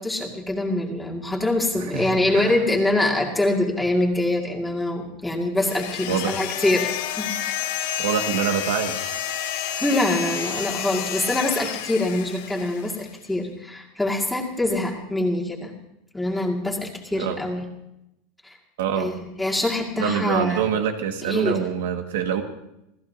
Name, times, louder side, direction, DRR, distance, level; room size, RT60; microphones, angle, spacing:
voice 1, 0.0-6.9 7.2-7.3 9.8-15.7 16.1-17.7 18.4-18.6 19.0-20.6 21.2-21.6, left 2 dB, 5° left, -1 dB, 2.1 m, -24 dB
voice 2, 1.9-2.5 6.1-6.4 8.0-9.1 17.1-17.4 18.8-19.1 20.0-22.4, right 8 dB, 90° right, 5 dB, 1.8 m, -25 dB
sound 1, 5.6-13.0, left 10 dB, 85° left, 2.3 m, -30 dB
28.0 x 16.0 x 2.8 m, 0.86 s
supercardioid pair, 170°, 0 cm